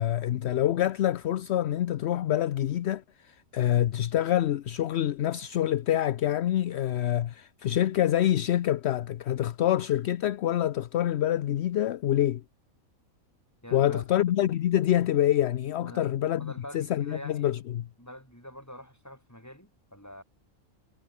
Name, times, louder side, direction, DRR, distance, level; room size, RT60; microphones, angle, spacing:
voice 1, 0.0-12.4 13.7-17.9, left 12 dB, 60° left, 0.8 m, -26 dB
voice 2, 13.6-14.1 15.8-17.5 18.0-20.2, equal, 10° left, 7.4 m, -45 dB
omnidirectional pair, 1.5 m